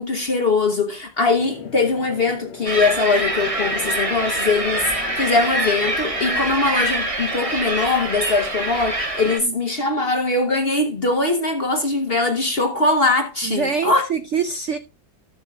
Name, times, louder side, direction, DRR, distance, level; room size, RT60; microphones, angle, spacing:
voice 1, 0.0-4.9 5.2-14.1, left 3 dB, 45° left, 0.9 m, -21 dB
sound 1, 1.4-6.5, left 6 dB, 80° left, 1.6 m, -39 dB
sound 2, 2.7-9.4, right 1 dB, 20° right, 1.1 m, -25 dB
voice 2, 13.4-14.8, right 6 dB, 65° right, 0.7 m, -24 dB
14.0 x 7.0 x 2.3 m
omnidirectional pair, 2.0 m